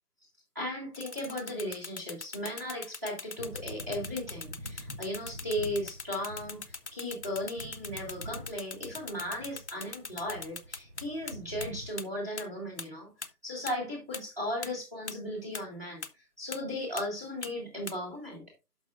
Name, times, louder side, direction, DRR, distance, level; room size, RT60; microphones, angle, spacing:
voice 1, 0.6-13.1 13.4-18.4, left 1 dB, 10° right, -5 dB, 2.0 m, -36 dB
sound 1, 0.9-11.3 11.6-11.7 12.0-12.1 12.4-12.5 12.8-12.9 13.2-13.3 13.7-13.8 14.1-14.2 14.6-14.7 15.1-15.2 15.5-15.6 16.0-16.1 16.5-16.6 17.0-17.1 17.4-17.5 17.9-18.0, left 4 dB, 50° left, 0.7 m, -40 dB
sound 2, 3.4-12.0, equal, 40° right, 0.8 m, -46 dB
12.0 x 6.1 x 2.5 m, 0.25 s
figure-of-eight pair, 175°, 46 cm